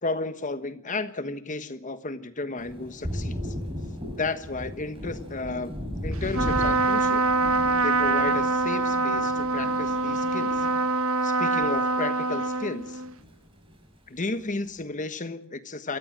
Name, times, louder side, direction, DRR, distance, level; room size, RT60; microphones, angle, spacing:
voice 1, 0.0-3.5 4.2-5.8 6.0-7.2 7.8-10.7 11.2-13.0 14.1-16.0, left 3 dB, 40° left, 11 dB, 1.3 m, -33 dB
Thunder, 2.6-12.3 12.7-13.8, equal, 25° right, 6.1 m, -36 dB
Trumpet, 6.3-13.1, right 3 dB, 90° right, 1.3 m, -24 dB
27.5 x 14.5 x 7.4 m, 0.71 s
head